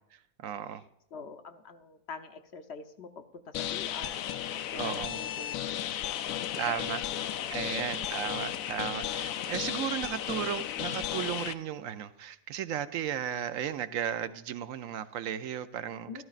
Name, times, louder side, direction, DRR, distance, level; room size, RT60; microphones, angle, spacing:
voice 1, 0.4-0.8 4.8-5.2 6.6-7.0 7.5-16.2, right 9 dB, 75° right, 11 dB, 1.0 m, -35 dB
voice 2, 1.1-5.6 6.4-6.8 7.1-8.1 10.7-10.9 16.1-16.2, left 5 dB, 60° left, 7 dB, 1.0 m, -46 dB
sound 1, 3.5-11.5, left 11 dB, 80° left, 1.0 m, -34 dB
14.0 x 13.0 x 2.5 m, 0.80 s
omnidirectional pair, 1.4 m